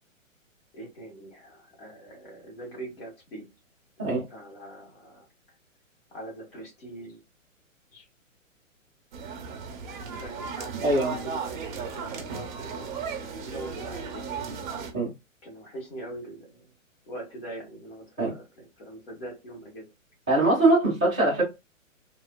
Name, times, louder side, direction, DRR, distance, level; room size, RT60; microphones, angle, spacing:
voice 1, 0.7-3.5 4.0-5.3 6.1-7.2 7.9-8.1 10.1-13.0 13.4-14.4 15.4-16.6 17.0-19.9, right 1 dB, 45° left, 1.5 m, -42 dB
sound 1, 9.1-14.9, right 5 dB, 35° right, 0.7 m, -35 dB
voice 2, 10.8-11.1 14.9-15.1 18.2-18.3 20.3-21.4, right 2 dB, 5° right, 0.3 m, -22 dB
3.1 x 2.2 x 2.2 m
figure-of-eight pair, 120°, 40 cm